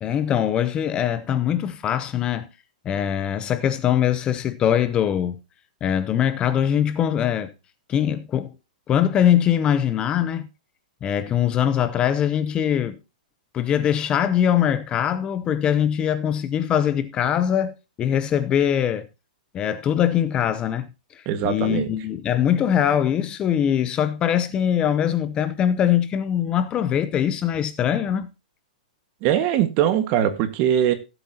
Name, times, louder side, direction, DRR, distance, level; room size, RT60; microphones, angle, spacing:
voice 1, 0.0-2.5 2.8-5.4 5.8-7.5 7.9-8.5 8.9-10.5 11.0-13.0 13.5-19.1 19.5-20.9 21.1-28.3, left 9 dB, 20° left, 0.7 m, -22 dB
voice 2, 21.2-21.9 29.2-30.9, right 10 dB, 35° right, 1.5 m, -21 dB
17.0 x 8.0 x 2.8 m
hypercardioid pair, 150°, 4 cm